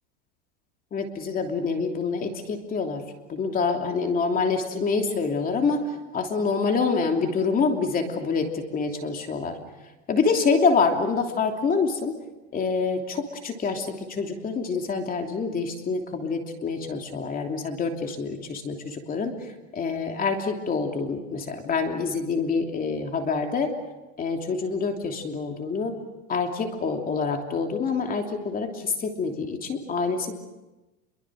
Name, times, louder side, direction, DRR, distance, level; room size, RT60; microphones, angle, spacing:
voice 1, 0.9-3.0 3.3-9.6 10.1-12.1 12.5-19.3 19.7-23.7 24.2-25.9 26.3-30.3, left 4 dB, 25° left, 3 dB, 3.1 m, -26 dB
28.0 x 23.5 x 6.4 m, 1.1 s
supercardioid pair, 140°, 34 cm